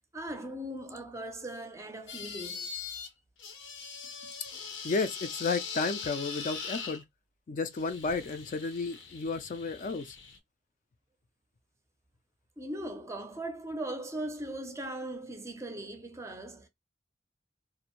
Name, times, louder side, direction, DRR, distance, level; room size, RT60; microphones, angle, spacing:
voice 1, 0.1-2.7 4.2-4.3 12.6-16.7, right 1 dB, 15° right, 0.5 m, -39 dB
sound 1, 2.1-3.1 3.4-7.0 7.7-10.4, left 5 dB, 85° left, 0.6 m, -41 dB
voice 2, 4.8-7.0 7.5-10.2, left 4 dB, 45° left, 0.3 m, -32 dB
2.5 x 2.0 x 2.9 m
head